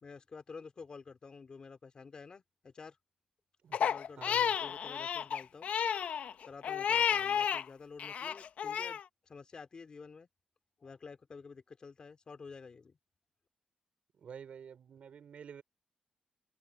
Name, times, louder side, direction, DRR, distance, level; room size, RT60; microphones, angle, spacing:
voice 1, 0.0-3.0 3.8-5.7 6.4-10.3 10.8-13.0, left 5 dB, 35° left, 3.5 m, -50 dB
Crying sobbing, 3.7-7.6 8.0-9.0, left 8 dB, 65° left, 0.9 m, -32 dB
voice 2, 4.2-4.6 14.2-15.6, right 7 dB, 55° right, 4.3 m, -49 dB
wide cardioid pair, 150°, 3 cm